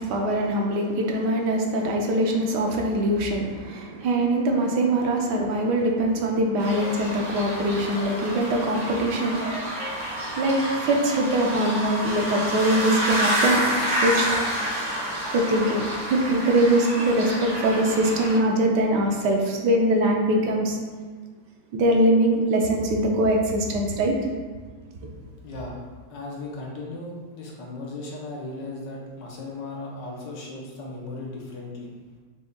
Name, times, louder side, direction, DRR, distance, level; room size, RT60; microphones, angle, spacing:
voice 1, 0.0-9.4 10.4-13.6 14.0-14.3 15.3-15.8 16.1-20.8 21.7-24.2, right 1 dB, 75° right, 1 dB, 1.2 m, -22 dB
sound 1, 6.6-18.4, equal, 55° right, 2.2 m, -28 dB
voice 2, 25.4-31.9, left 2 dB, 75° left, -2 dB, 1.5 m, -36 dB
5.2 x 3.6 x 2.2 m, 1.5 s
omnidirectional pair, 1.9 m